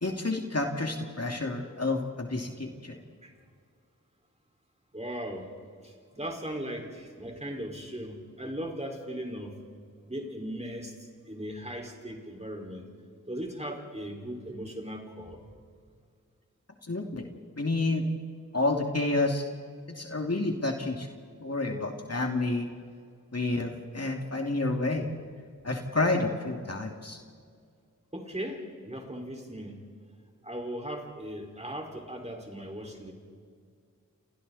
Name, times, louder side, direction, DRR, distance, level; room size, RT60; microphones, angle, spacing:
voice 1, 0.0-2.9 16.9-17.2 17.6-18.0 18.5-19.4 20.0-21.1 21.4-22.7 23.3-25.1 25.6-27.2, left 2 dB, 50° left, 2 dB, 2.5 m, -29 dB
voice 2, 4.9-5.5 5.8-9.6 10.0-10.9 11.2-12.9 13.3-15.4 24.9-25.0 28.1-29.8 30.4-33.1, equal, 20° right, 1 dB, 4.9 m, -38 dB
29.5 x 28.0 x 4.2 m, 2.1 s
wide cardioid pair, 45°, 33 cm